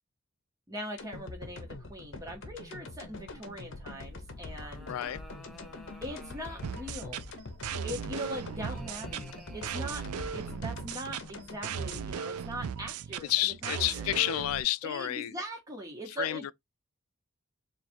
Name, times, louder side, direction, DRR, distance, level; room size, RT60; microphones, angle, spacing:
voice 1, 0.7-4.9 6.0-7.2 7.8-10.0 10.3-13.3 13.6-14.0 14.8-16.4, equal, 15° right, 1.3 m, -41 dB
sound 1, 1.0-13.2 13.6-13.7, left 2 dB, 60° left, 0.8 m, -44 dB
sound 2, 4.3-7.1 8.1-10.7, equal, ahead, 0.6 m, -53 dB
voice 2, 4.9-5.2 13.2-15.4 16.2-16.5, left 14 dB, 80° left, 0.3 m, -30 dB
sound 3, 6.6-14.6, right 7 dB, 85° right, 0.4 m, -37 dB
3.9 x 2.5 x 4.3 m
head